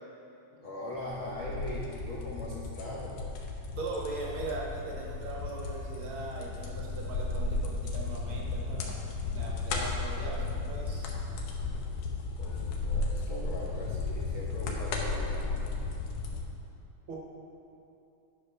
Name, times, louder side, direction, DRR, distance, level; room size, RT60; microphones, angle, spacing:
voice 1, 0.5-3.2 12.4-15.7, left 1 dB, 70° left, -5 dB, 1.2 m, -40 dB
sound 1, 1.0-16.4, left 3 dB, 85° left, 2.4 m, -34 dB
voice 2, 3.8-9.0 9.3-11.1 17.1-17.2, right 3 dB, 65° right, -2 dB, 1.3 m, -40 dB
10.0 x 5.4 x 5.5 m, 2.9 s
omnidirectional pair, 3.6 m